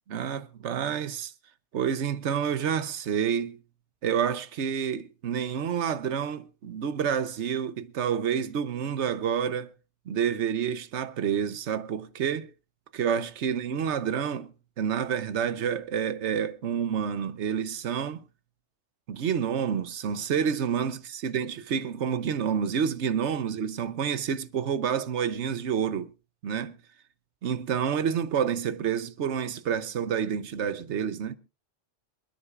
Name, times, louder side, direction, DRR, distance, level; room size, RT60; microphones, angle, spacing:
voice 1, 0.1-1.3 1.7-3.6 4.0-9.7 10.1-12.5 12.9-18.2 19.1-26.1 26.4-26.8 27.4-31.4, right 7 dB, 70° right, 1.2 m, -29 dB
27.0 x 9.9 x 2.4 m
omnidirectional pair, 1.3 m